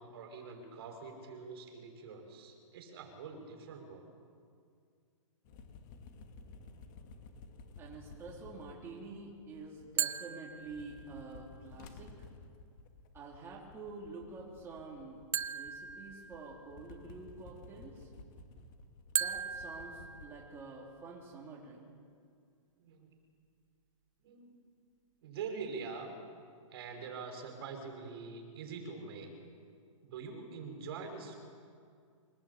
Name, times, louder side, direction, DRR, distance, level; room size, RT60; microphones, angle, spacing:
voice 1, 0.0-4.1 22.8-23.1 24.2-24.6 25.2-26.2 26.7-29.3 30.0-31.4, right 5 dB, 50° right, 4 dB, 5.7 m, -44 dB
sound 1, 5.4-10.2 10.5-20.2, left 3 dB, 35° left, 2.3 m, -54 dB
voice 2, 7.8-12.1 13.1-18.1 19.2-21.9, right 3 dB, 15° right, -3 dB, 3.4 m, -48 dB
sound 2, 10.0-11.3 15.3-16.9 19.2-20.9, right 8 dB, 80° right, 1.4 m, -38 dB
24.0 x 19.0 x 8.6 m, 2.2 s
hypercardioid pair, 155°, 17 cm